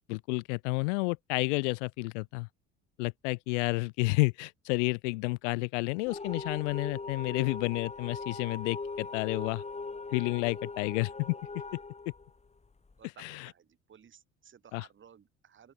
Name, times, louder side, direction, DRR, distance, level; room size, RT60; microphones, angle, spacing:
voice 1, 0.1-2.5 3.0-9.6 10.1-11.3 13.2-13.5 14.7-14.9, left 28 dB, 70° left, 0.5 m, -30 dB
sound 1, 6.1-13.0, left 3 dB, 15° left, 1.9 m, -40 dB
voice 2, 13.0-15.7, right 8 dB, 30° right, 1.4 m, -57 dB
open air
hypercardioid pair, 55°, 38 cm